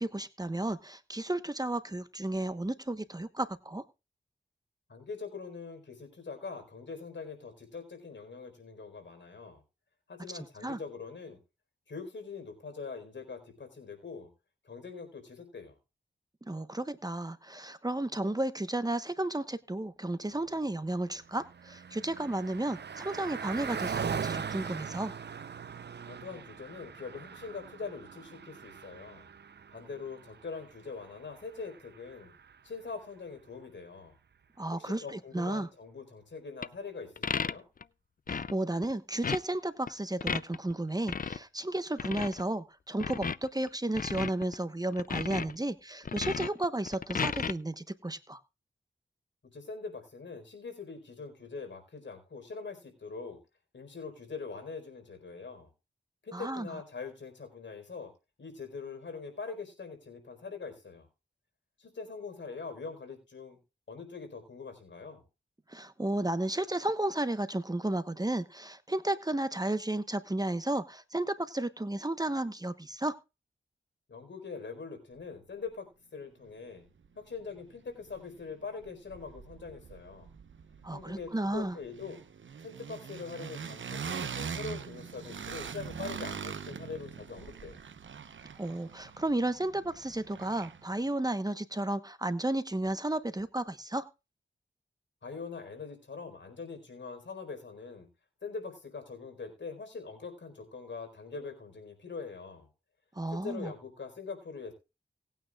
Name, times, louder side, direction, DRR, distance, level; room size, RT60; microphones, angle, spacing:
voice 1, 0.0-3.8 10.3-10.8 16.4-25.1 34.6-35.7 38.3-48.4 56.3-56.7 65.7-73.1 80.8-81.8 88.6-94.0 103.1-103.7, right 1 dB, 20° right, 11 dB, 1.1 m, -33 dB
voice 2, 4.9-9.6 10.1-11.4 11.9-14.3 14.6-15.8 26.1-29.3 29.7-32.3 32.6-34.1 34.7-37.6 49.5-53.4 53.7-55.7 56.2-58.1 58.4-61.1 61.8-63.6 63.9-65.2 74.1-76.9 77.2-80.3 80.9-82.2 82.6-87.8 95.2-98.1 98.4-102.7 103.3-104.7, left 4 dB, 70° left, 5 dB, 4.5 m, -43 dB
Car passing by, 20.9-32.7, right 6 dB, 60° right, 0.7 m, -41 dB
sound 1, 36.6-36.7 37.2-37.8 38.3-38.5 38.8-38.9 39.2-39.4 39.9-40.7 41.1-41.4 42.0-42.4 43.0-43.7 43.9-44.5 44.9-45.5 46.0-47.5, left 6 dB, 45° left, 0.5 m, -33 dB
sound 2, 77.0-77.1 77.4-78.5 78.8-91.0, right 6 dB, 80° right, 1.0 m, -43 dB
19.0 x 9.1 x 2.4 m, 0.28 s
cardioid pair, 50°, 19 cm